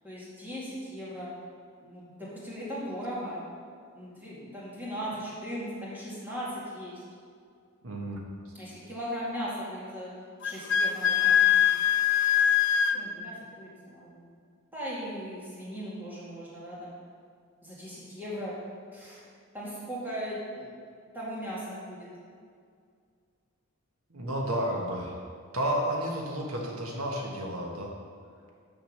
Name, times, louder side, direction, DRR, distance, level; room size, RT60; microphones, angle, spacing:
voice 1, 0.0-1.3 1.8-3.4 3.9-7.0 8.5-10.1 10.4-11.7 12.9-14.3 14.7-16.9 17.6-18.5 18.9-19.2 19.5-20.7 21.1-22.1, equal, 10° right, -8 dB, 2.3 m, -38 dB
voice 2, 7.8-8.2 8.4-8.5 24.1-25.2 25.5-27.9, right 1 dB, 90° right, 0 dB, 1.4 m, -31 dB
Wind instrument woodwind instrument, 10.4-13.0, left 9 dB, 55° left, 0.5 m, -23 dB
7.1 x 6.3 x 6.6 m, 2.2 s
head